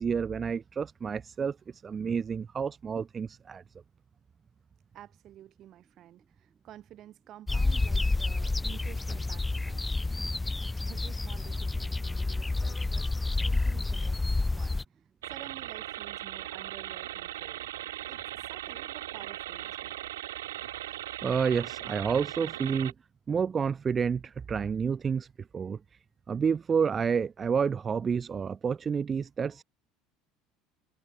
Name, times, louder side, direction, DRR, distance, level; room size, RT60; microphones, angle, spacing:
voice 1, 0.0-3.6 20.9-21.0 21.2-22.9 23.3-25.3 25.5-25.8 26.3-29.6, right 6 dB, 30° right, 0.4 m, -29 dB
voice 2, 4.9-17.7 18.1-20.0, right 12 dB, 50° right, 6.4 m, -51 dB
sound 1, 7.5-14.8, left 2 dB, 15° left, 1.3 m, -29 dB
sound 2, 15.2-22.9, right 14 dB, 80° right, 1.3 m, -39 dB
hypercardioid pair, 70°, 0 cm